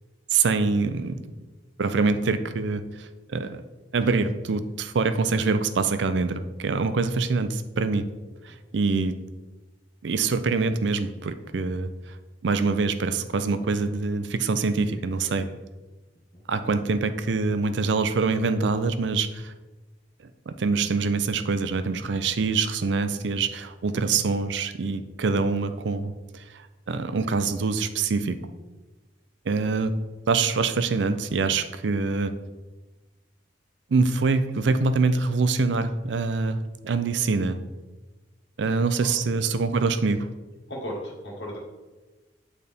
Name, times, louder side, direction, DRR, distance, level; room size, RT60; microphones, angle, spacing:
voice 1, 0.3-1.2 1.8-3.6 3.9-8.1 8.4-9.2 10.0-11.9 12.4-15.5 16.5-19.5 20.5-26.1 26.9-28.4 29.5-29.9 30.3-32.3 33.9-37.6 38.6-40.3, right 4 dB, 75° right, 11 dB, 0.5 m, -25 dB
voice 2, 40.7-41.6, equal, 70° left, -3 dB, 1.8 m, -36 dB
8.6 x 4.1 x 3.5 m, 1.2 s
head